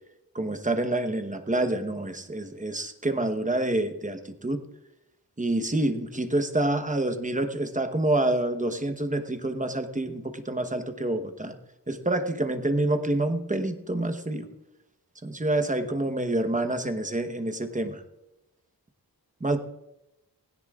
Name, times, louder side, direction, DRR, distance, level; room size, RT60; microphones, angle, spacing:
voice 1, 0.3-4.6 5.4-11.5 11.9-14.5 15.2-18.0 19.4-19.6, right 1 dB, 20° right, 7 dB, 1.0 m, -27 dB
19.0 x 17.0 x 2.4 m, 0.90 s
wide cardioid pair, 115°, 39 cm